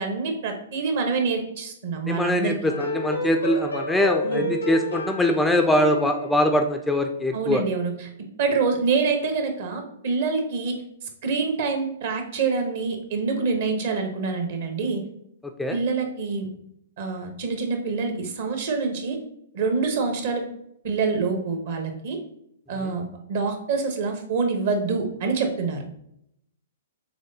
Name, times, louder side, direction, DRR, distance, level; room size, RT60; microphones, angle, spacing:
voice 1, 0.0-2.6 4.2-4.5 7.3-8.1 8.4-10.8 11.2-15.0 15.7-16.5 17.0-19.2 19.5-20.4 20.8-22.2 22.7-25.8, right 4 dB, 55° right, 5 dB, 1.0 m, -26 dB
voice 2, 2.1-7.6 15.6-15.8 22.8-22.9, left 1 dB, 5° left, 5 dB, 0.4 m, -23 dB
sound 1, 2.6-7.3, left 1 dB, 85° left, 0.8 m, -30 dB
6.2 x 3.2 x 2.7 m, 0.76 s
figure-of-eight pair, 115°, 0 cm